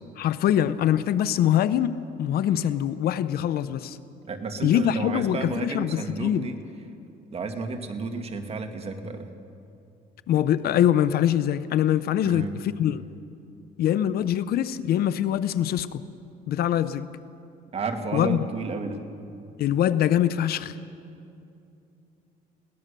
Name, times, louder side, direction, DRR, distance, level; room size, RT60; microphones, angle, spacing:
voice 1, 0.2-4.0 4.6-6.5 10.3-13.0 13.8-16.0 16.5-17.1 18.1-18.5 19.6-20.8, left 11 dB, 65° left, 15 dB, 0.8 m, -23 dB
voice 2, 4.3-6.6 7.3-9.3 12.2-12.5 17.7-19.0, right 4 dB, 35° right, 5 dB, 2.0 m, -32 dB
21.5 x 18.0 x 6.7 m, 2.6 s
cardioid pair, 110°, 17 cm